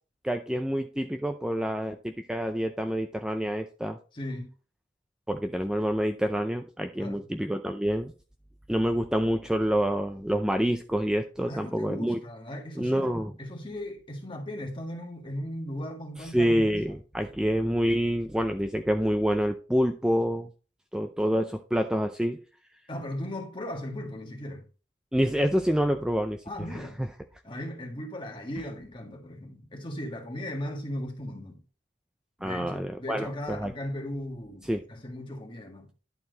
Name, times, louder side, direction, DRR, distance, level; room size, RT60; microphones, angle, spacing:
voice 1, 0.2-4.0 5.3-8.1 8.7-12.2 12.8-13.3 16.3-20.5 20.9-22.4 25.1-26.4 26.7-27.1 32.4-33.7 34.7-34.8, equal, 5° right, 0.4 m, -27 dB
voice 2, 4.1-4.5 7.0-7.3 11.5-13.1 13.4-16.5 16.9-17.0 22.9-24.7 26.4-27.0 27.4-31.6 32.4-35.9, left 1 dB, 25° left, 1.7 m, -37 dB
11.0 x 4.5 x 3.9 m
head